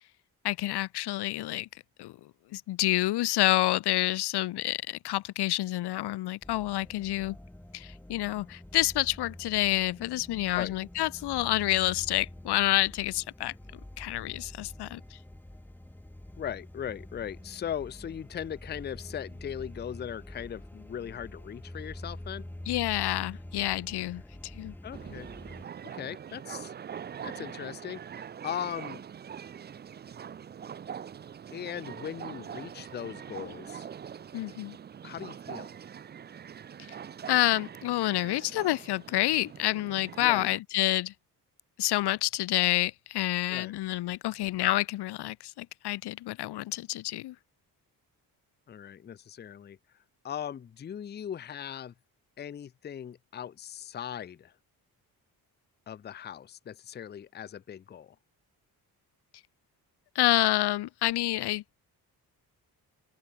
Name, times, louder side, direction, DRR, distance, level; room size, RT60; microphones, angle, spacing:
voice 1, 0.4-1.7 2.0-7.4 7.7-13.5 14.0-15.2 22.7-24.7 34.3-34.8 37.3-41.1 41.8-47.3 60.1-61.6, left 16 dB, 85° left, 0.9 m, -28 dB
sound 1, 6.4-25.7, left 1 dB, 5° left, 4.0 m, -46 dB
voice 2, 16.4-22.5 24.8-25.3 25.9-26.7 27.2-29.0 31.5-33.9 35.0-35.7 40.2-40.5 43.5-43.7 48.7-49.8 50.2-51.9 52.4-54.5 55.9-58.2, left 9 dB, 25° left, 0.5 m, -39 dB
sound 2, 24.9-40.6, right 8 dB, 25° right, 0.4 m, -43 dB
open air
wide cardioid pair, 175°, 39 cm